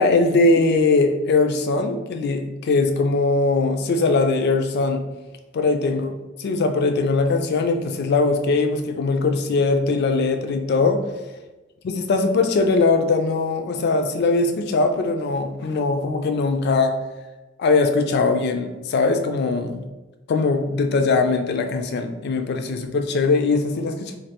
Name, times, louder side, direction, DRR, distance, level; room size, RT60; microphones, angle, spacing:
voice 1, 0.0-5.0 5.5-6.1 6.4-11.0 11.8-16.9 17.6-19.8 20.3-24.2, left 3 dB, 55° left, 6 dB, 0.3 m, -21 dB
3.2 x 2.3 x 2.9 m, 1.1 s
head